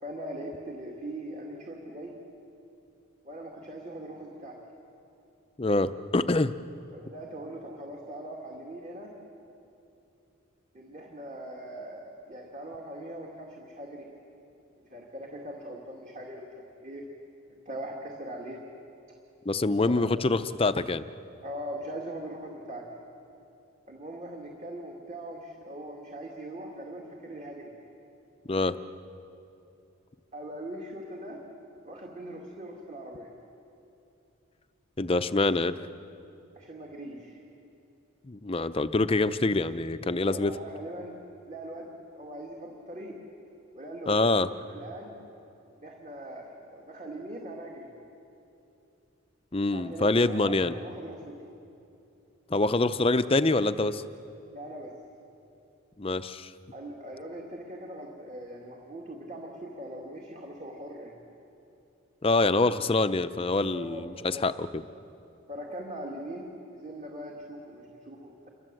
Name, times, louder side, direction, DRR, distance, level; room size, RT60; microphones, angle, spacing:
voice 1, 0.0-2.2 3.2-4.6 6.9-9.1 10.7-14.1 14.9-17.0 17.5-18.6 19.9-20.1 21.4-22.8 23.9-27.7 30.3-31.4 31.8-33.3 36.5-37.4 40.2-41.2 41.5-43.2 43.7-45.2 45.8-47.9 49.7-51.3 54.5-54.9 56.7-61.2 63.7-64.0 64.3-64.4 65.5-68.5, right 1 dB, 35° right, -1 dB, 2.5 m, -41 dB
voice 2, 5.6-6.5 19.5-21.0 28.5-28.7 35.0-35.7 38.3-40.5 44.1-44.5 49.5-50.7 52.5-54.0 56.0-56.5 62.2-64.8, left 2 dB, 25° left, 12 dB, 0.6 m, -25 dB
28.5 x 24.0 x 7.8 m, 2.8 s
head